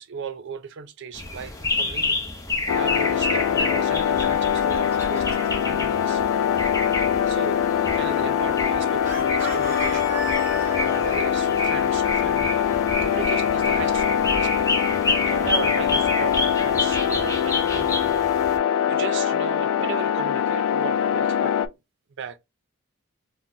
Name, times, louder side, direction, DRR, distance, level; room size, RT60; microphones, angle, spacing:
voice 1, 0.0-2.2 2.7-6.2 7.3-7.6 7.9-10.5 10.8-12.6 13.0-14.7 14.9-18.5 18.9-21.5 22.2-22.4, right 5 dB, 60° right, 0.4 m, -36 dB
sound 1, 1.1-18.6, left 2 dB, 15° left, 0.6 m, -29 dB
sound 2, 2.7-21.7, left 9 dB, 85° left, 0.3 m, -23 dB
Chicken rooster, 4.4-5.6 9.0-11.2, right 1 dB, 15° right, 2.0 m, -34 dB
3.7 x 2.1 x 2.6 m
head